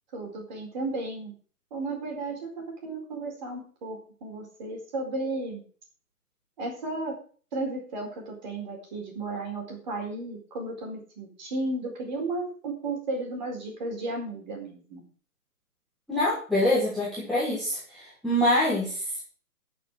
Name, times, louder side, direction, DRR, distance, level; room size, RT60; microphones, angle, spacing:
voice 1, 0.1-1.3 1.7-5.6 6.6-7.2 7.5-15.0, right 2 dB, 30° right, 1 dB, 4.3 m, -34 dB
voice 2, 16.1-19.2, left 1 dB, ahead, -11 dB, 1.4 m, -25 dB
13.0 x 6.7 x 6.2 m, 0.41 s
hypercardioid pair, 170°, 46 cm